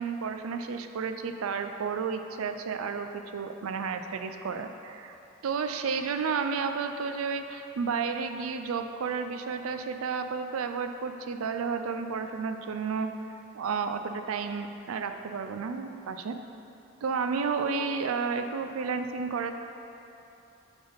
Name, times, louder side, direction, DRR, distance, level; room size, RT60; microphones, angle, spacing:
voice 1, 0.0-5.2 5.4-13.1 13.5-16.4 17.0-19.5, right 5 dB, 80° right, 7 dB, 0.4 m, -32 dB
8.9 x 3.5 x 5.5 m, 2.8 s
head